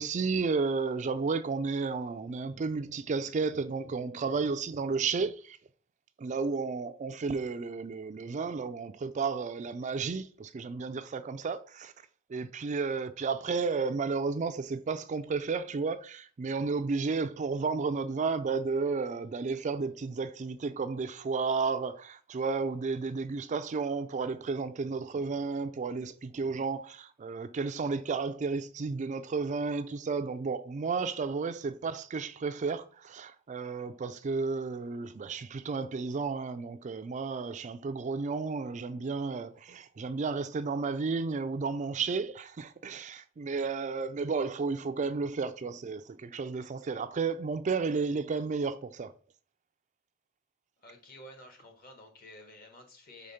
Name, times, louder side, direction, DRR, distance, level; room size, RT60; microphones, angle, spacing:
voice 1, 0.0-5.6 6.2-11.9 12.3-49.1, right 4 dB, 35° right, 0.4 m, -32 dB
voice 2, 50.8-53.3, left 1 dB, 45° left, 1.4 m, -51 dB
5.0 x 3.5 x 5.6 m
head